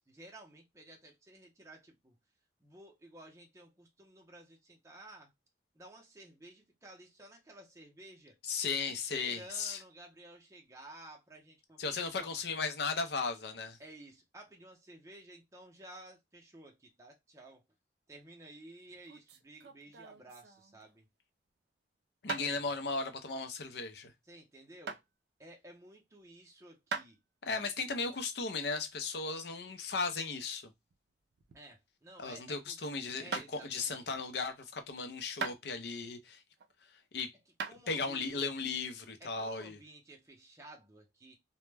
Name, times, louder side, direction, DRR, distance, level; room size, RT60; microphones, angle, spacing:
voice 1, 0.0-2.2 2.6-5.3 5.7-8.4 8.9-11.8 12.2-12.4 13.8-17.6 18.1-21.0 22.2-22.7 24.3-25.0 25.4-27.2 31.5-32.8 33.2-34.2 37.7-38.5 39.2-41.4, right 1 dB, 15° right, 0.5 m, -54 dB
voice 2, 8.4-9.8 11.8-13.8 22.2-24.1 27.4-30.7 32.2-36.4 37.1-37.3 37.9-39.8, left 4 dB, 65° left, 0.5 m, -36 dB
sound 1, 18.9-20.9 22.3-22.5 24.9-25.0 26.9-27.2 30.4-31.8 32.1-32.4 33.3-33.5 35.4-36.0 36.6-37.1 37.6-37.8, right 5 dB, 65° right, 0.4 m, -41 dB
2.1 x 2.1 x 3.1 m
head